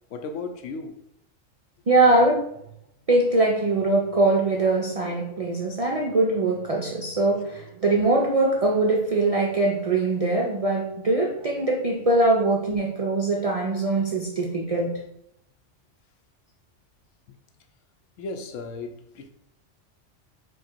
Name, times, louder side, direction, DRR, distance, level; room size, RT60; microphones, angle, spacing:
voice 1, 0.1-1.0 17.3-17.4 18.2-19.3, left 3 dB, 90° left, 1.0 m, -35 dB
voice 2, 1.9-2.5 3.1-15.0, right 2 dB, 65° right, 0.3 m, -22 dB
4.7 x 2.3 x 4.3 m
omnidirectional pair, 1.3 m